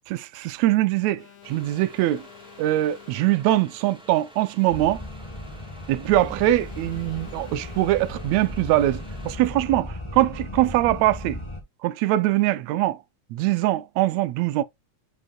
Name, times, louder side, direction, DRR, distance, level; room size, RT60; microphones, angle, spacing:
voice 1, 0.1-2.3 2.6-5.0 5.9-11.4 11.8-13.0 13.3-14.6, right 15 dB, 75° right, 1.7 m, -22 dB
Alarm, 1.1-3.7 6.1-8.7, left 11 dB, 60° left, 2.2 m, -50 dB
sound 1, 1.4-9.4, equal, ahead, 1.2 m, -50 dB
sound 2, 4.7-11.6, left 1 dB, 40° left, 0.4 m, -36 dB
9.3 x 5.0 x 2.3 m
omnidirectional pair, 3.6 m